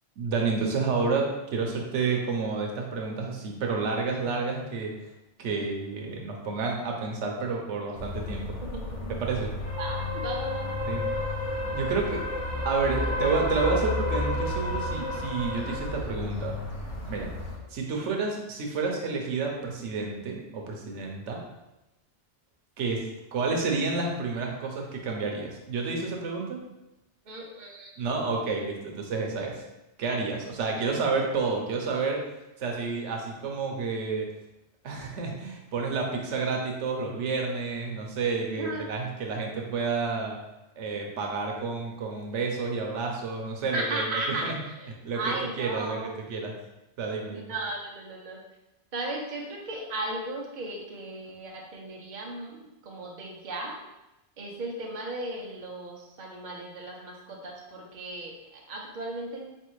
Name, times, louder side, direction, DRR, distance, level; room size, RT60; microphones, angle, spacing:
voice 1, 0.2-4.9 5.4-8.6 9.1-9.5 10.9-11.0 11.7-12.2 12.5-16.6 17.0-17.3 17.7-21.4 22.8-26.6 28.0-29.6 30.0-32.2 32.6-34.3 34.8-40.4 40.8-44.1 44.4-44.5 45.0-45.2 45.6-46.0 46.3-46.5 47.0-47.5, right 4 dB, 85° right, 1 dB, 1.0 m, -30 dB
sound 1, 8.0-17.6, left 1 dB, 85° left, 1.1 m, -31 dB
voice 2, 8.7-9.2 9.8-10.8 17.6-17.7 17.9-18.2 21.3-21.5 27.2-28.0 38.6-38.9 43.7-46.1 47.3-48.4 48.9-53.8 54.4-59.4, right 2 dB, 45° right, -1 dB, 0.8 m, -36 dB
4.1 x 3.2 x 3.1 m, 0.96 s
omnidirectional pair, 1.2 m